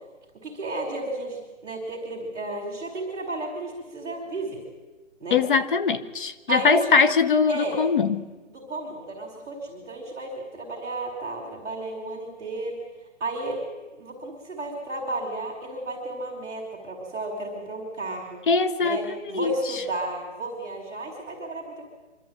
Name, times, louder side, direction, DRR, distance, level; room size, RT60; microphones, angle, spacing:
voice 1, 0.4-4.6 5.2-5.4 6.5-7.0 7.5-7.8 8.5-12.8 13.2-13.6 14.0-18.4 18.8-21.8, right 2 dB, 10° right, -5 dB, 3.9 m, -33 dB
voice 2, 5.3-8.3 18.5-19.5, left 5 dB, 40° left, 12 dB, 1.1 m, -22 dB
25.0 x 13.0 x 9.2 m, 1.2 s
hypercardioid pair, 160°, 38 cm